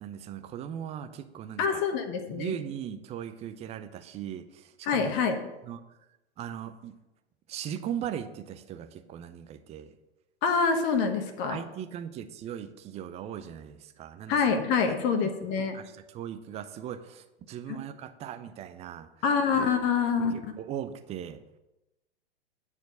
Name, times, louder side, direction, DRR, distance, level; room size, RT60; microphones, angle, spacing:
voice 1, 0.0-1.8 2.3-5.1 5.6-5.8 6.4-6.9 7.5-10.0 11.5-14.4 15.2-15.3 15.7-19.1 20.6-21.4, right 9 dB, 20° right, 10 dB, 0.6 m, -38 dB
voice 2, 1.6-2.5 4.8-5.4 10.4-11.6 14.3-15.7 17.7-17.8 19.2-20.5, left 5 dB, 35° left, 6 dB, 1.2 m, -26 dB
9.7 x 4.5 x 6.8 m, 0.99 s
figure-of-eight pair, 100°, 33 cm